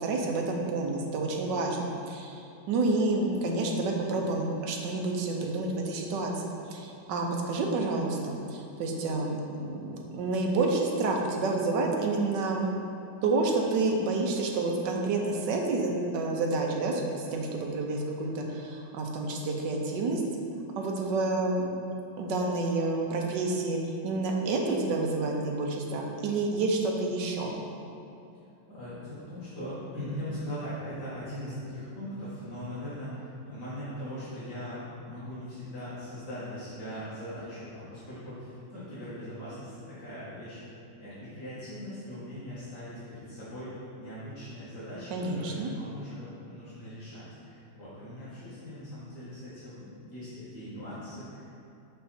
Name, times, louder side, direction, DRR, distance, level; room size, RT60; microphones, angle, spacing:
voice 1, 0.0-6.3 6.7-12.7 13.2-20.2 20.8-21.7 22.2-27.5 45.1-45.7, right 3 dB, 75° right, 1 dB, 1.4 m, -29 dB
voice 2, 28.7-40.6 41.0-43.7 44.0-51.5, equal, 65° left, -11 dB, 2.3 m, -40 dB
5.7 x 5.4 x 4.3 m, 2.8 s
omnidirectional pair, 2.0 m